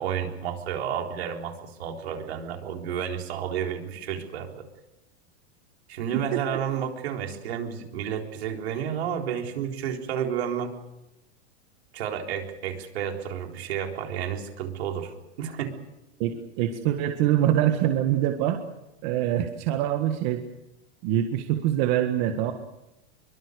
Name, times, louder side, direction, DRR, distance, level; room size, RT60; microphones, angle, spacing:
voice 1, 0.0-4.6 5.9-10.7 11.9-15.8, right 8 dB, 70° right, 3 dB, 4.0 m, -31 dB
voice 2, 6.1-6.6 16.2-18.6 19.0-20.4 21.0-22.5, right 11 dB, 45° right, 5 dB, 1.8 m, -24 dB
24.0 x 23.5 x 6.7 m, 0.91 s
supercardioid pair, 155°, 32 cm